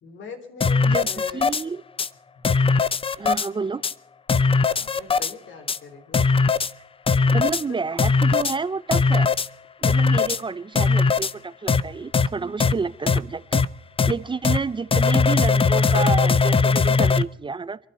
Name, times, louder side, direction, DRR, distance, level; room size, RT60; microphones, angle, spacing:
voice 1, 0.0-1.4 2.4-2.5 4.7-6.2 7.7-7.8, left 4 dB, 70° left, 6 dB, 3.8 m, -41 dB
sound 1, 0.6-1.6 2.0-2.1 2.4-3.5 3.8-3.9 4.3-5.3 5.7-5.8 6.1-6.7 7.1-7.6 8.0-8.6 8.9-9.5 9.8-10.4 10.8-11.3 11.7-11.8 12.1-12.3 12.6-12.7 13.1-13.2 13.5-13.7 14.0-14.1 14.4-14.6 14.9-17.2, left 4 dB, 25° left, 0.6 m, -19 dB
voice 2, 1.3-1.8 3.2-3.8 7.3-9.3 9.8-13.6 14.1-17.8, right 4 dB, 25° right, 16 dB, 0.5 m, -29 dB
26.5 x 12.0 x 4.2 m, 0.75 s
cardioid pair, 90°, 20 cm